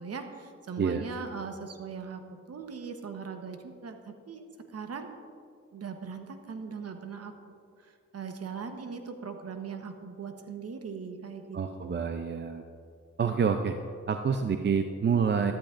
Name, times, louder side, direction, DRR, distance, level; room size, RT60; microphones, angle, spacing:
voice 1, 0.0-4.5 4.7-5.1 5.7-7.3 7.8-12.1, right 5 dB, 55° right, 6 dB, 1.2 m, -40 dB
voice 2, 11.5-12.6 13.2-13.8 14.1-15.5, right 6 dB, 40° right, 7 dB, 0.6 m, -27 dB
13.5 x 12.0 x 2.6 m, 2.2 s
cardioid pair, 65°, 29 cm